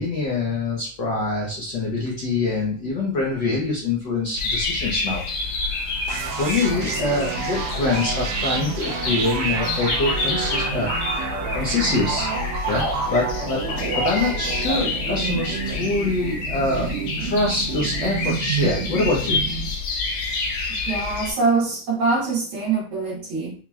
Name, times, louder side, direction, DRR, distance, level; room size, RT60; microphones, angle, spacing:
voice 1, 0.0-5.2 5.6-10.9 11.2-11.3 11.5-12.3 12.7-13.6 13.9-16.9 17.2-19.4, left 3 dB, 90° left, -3 dB, 0.9 m, -25 dB
sound 1, 4.4-21.3, left 4 dB, 70° left, 1.8 m, -28 dB
sound 2, 6.1-19.7, right 5 dB, 75° right, 1.8 m, -29 dB
voice 2, 20.9-23.5, right 4 dB, 55° right, -4 dB, 2.2 m, -23 dB
5.6 x 3.0 x 2.3 m, 0.43 s
omnidirectional pair, 3.3 m